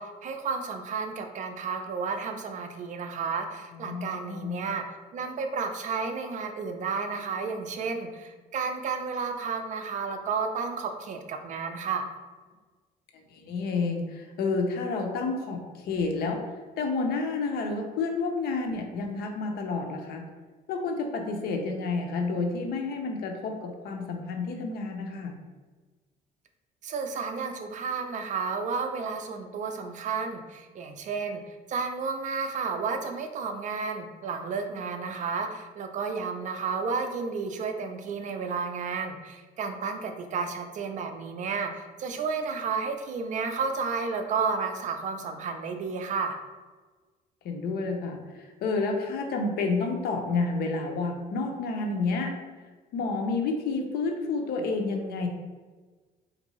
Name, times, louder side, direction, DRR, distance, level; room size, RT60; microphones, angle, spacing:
voice 1, 0.0-4.8 5.1-12.1 26.8-31.4 31.7-46.4, right 5 dB, 45° right, 6 dB, 0.4 m, -32 dB
voice 2, 3.7-4.6 13.3-16.4 16.8-20.2 20.7-25.3 47.4-48.2 48.6-52.3 52.9-55.3, left 3 dB, 70° left, 3 dB, 0.6 m, -30 dB
3.4 x 2.6 x 3.0 m, 1.3 s
cardioid pair, 110°, 17 cm